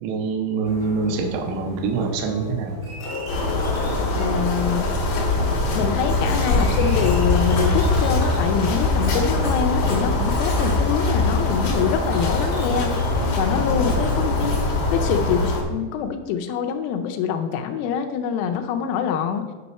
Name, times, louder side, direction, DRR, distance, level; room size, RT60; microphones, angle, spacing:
voice 1, 0.0-2.8, right 4 dB, 80° right, 4 dB, 3.1 m, -25 dB
sound 1, 0.6-15.4, left 2 dB, 25° left, 0.8 m, -28 dB
sound 2, 3.3-15.6, left 2 dB, 70° left, 1.8 m, -24 dB
voice 2, 4.2-4.9 5.7-12.9 13.4-14.5 14.9-19.4, left 7 dB, 90° left, 5 dB, 3.4 m, -25 dB
Writing, 6.0-15.6, left 1 dB, 50° left, 1.2 m, -31 dB
9.5 x 4.2 x 5.6 m, 1.4 s
omnidirectional pair, 5.9 m